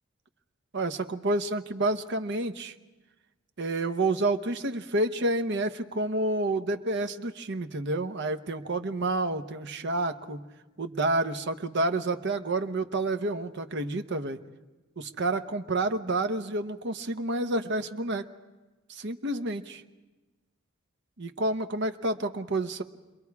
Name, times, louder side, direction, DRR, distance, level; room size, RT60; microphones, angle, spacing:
voice 1, 0.7-2.7 3.6-10.4 10.8-14.4 15.0-18.3 18.9-19.8 21.2-22.8, right 2 dB, 60° right, 8 dB, 1.0 m, -29 dB
30.0 x 22.0 x 4.8 m, 1.2 s
head